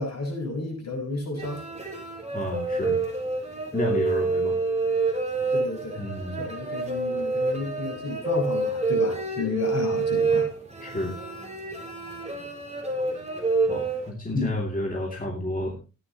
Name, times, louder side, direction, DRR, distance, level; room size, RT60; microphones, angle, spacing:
voice 1, 0.0-1.6 5.5-6.0 6.4-10.5 14.3-14.5, left 3 dB, 60° left, 0 dB, 6.3 m, -31 dB
sound 1, 1.4-14.1, right 3 dB, 20° right, 3.5 m, -27 dB
voice 2, 2.3-3.0 3.7-4.6 6.0-6.4 10.8-11.2 13.7-15.8, left 1 dB, 30° left, -1 dB, 2.6 m, -30 dB
14.5 x 11.0 x 3.0 m, 0.30 s
wide cardioid pair, 120°, 30 cm